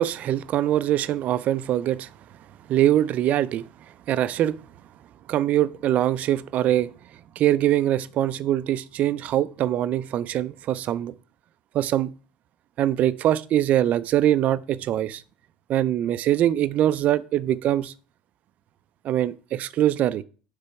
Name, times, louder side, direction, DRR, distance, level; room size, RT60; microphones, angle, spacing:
voice 1, 0.0-2.1 2.7-3.6 4.1-4.6 5.3-6.9 7.4-11.1 11.7-12.1 12.8-15.2 15.7-17.9 19.0-20.2, right 12 dB, 50° right, 0.4 m, -23 dB
6.8 x 3.4 x 4.6 m
supercardioid pair, 115°, 3 cm